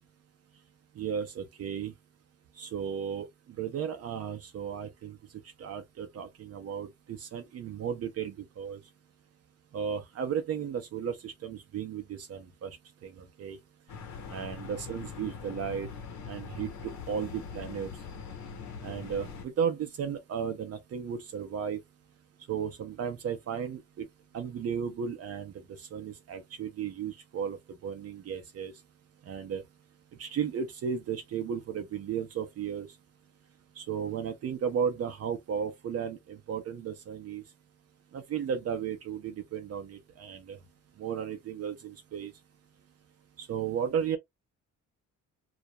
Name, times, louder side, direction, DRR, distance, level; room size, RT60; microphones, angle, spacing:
voice 1, 1.0-1.9 2.6-3.3 3.6-5.2 5.6-8.8 9.7-13.6 14.3-15.9 16.3-17.9 18.8-21.8 22.5-24.1 24.3-28.7 29.2-29.6 30.2-32.9 33.8-37.4 38.1-40.6 41.0-42.3 43.4-44.2, right 7 dB, 55° right, 0.6 m, -34 dB
sound 1, 13.9-19.4, left 6 dB, 70° left, 0.9 m, -42 dB
2.4 x 2.1 x 2.7 m
cardioid pair, 90°, 30 cm